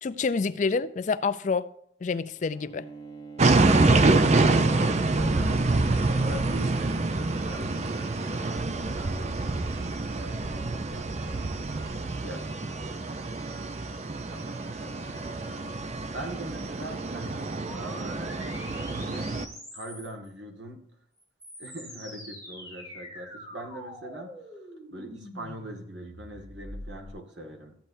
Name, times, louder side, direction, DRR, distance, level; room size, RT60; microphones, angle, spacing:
voice 1, 0.0-1.7 2.0-2.9, left 4 dB, 40° left, 0.3 m, -28 dB
Bowed string instrument, 2.4-7.0, right 2 dB, 20° left, 1.4 m, -47 dB
sound 1, 3.4-19.5, right 3 dB, 35° right, 0.5 m, -26 dB
voice 2, 3.7-12.8 14.1-15.6 16.1-19.3 19.7-20.8 21.6-24.6 24.9-27.8, equal, 70° right, 1.8 m, -43 dB
sound 2, 17.6-20.3 21.2-27.1, equal, 20° right, 3.1 m, -44 dB
14.0 x 8.7 x 2.7 m
head